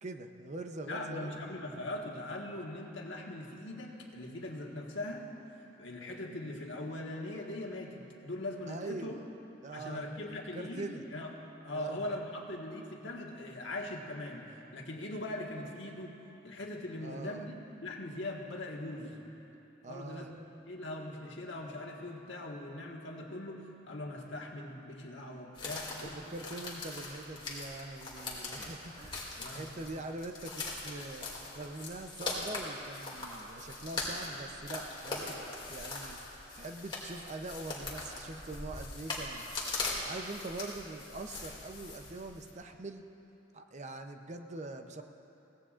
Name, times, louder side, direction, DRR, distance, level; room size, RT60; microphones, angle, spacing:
voice 1, 0.0-1.6 8.7-9.2 9.6-10.1 10.5-11.0 11.7-12.1 17.0-17.5 19.8-20.3 26.0-29.3 29.5-31.3 31.5-36.2 36.5-39.5 40.0-43.0 43.5-45.0, right 2 dB, 40° right, 6 dB, 0.7 m, -43 dB
voice 2, 0.9-5.3 5.8-9.2 9.7-11.3 11.6-14.4 14.7-16.1 16.4-17.5 17.8-19.2 19.9-20.4 20.7-26.2 29.3-29.8, left 1 dB, 70° left, 0 dB, 1.6 m, -41 dB
sound 1, 25.6-42.5, left 2 dB, 25° left, 2.4 m, -41 dB
22.5 x 17.0 x 2.5 m, 3.0 s
head